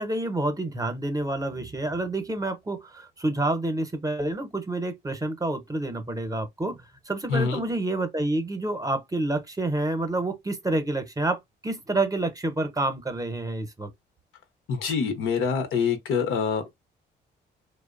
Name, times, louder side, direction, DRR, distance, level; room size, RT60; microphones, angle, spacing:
voice 1, 0.0-13.9, right 2 dB, 15° right, 0.7 m, -28 dB
voice 2, 7.3-7.7 14.7-16.7, left 6 dB, 80° left, 0.8 m, -26 dB
2.6 x 2.0 x 2.4 m
cardioid pair, 90°, 20 cm